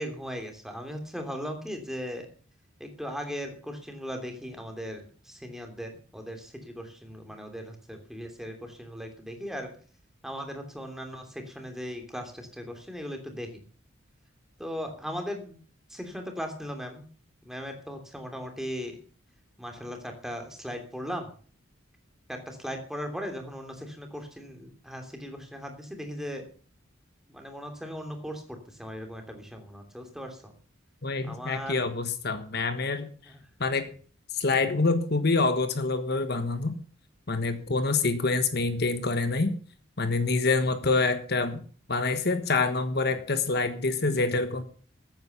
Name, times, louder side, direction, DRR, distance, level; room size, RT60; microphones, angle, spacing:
voice 1, 0.0-2.3 2.8-9.7 10.2-13.6 14.6-15.6 15.9-17.1 17.4-19.0 19.6-21.3 22.3-26.5 27.3-30.5 31.2-31.9 33.2-33.4, equal, ahead, 4 dB, 2.9 m, -38 dB
voice 2, 31.0-33.1 33.6-33.9 34.3-36.8 37.3-39.5 40.0-41.6 41.9-44.6, left 3 dB, 50° left, 9 dB, 1.3 m, -26 dB
14.5 x 9.5 x 6.8 m, 0.42 s
head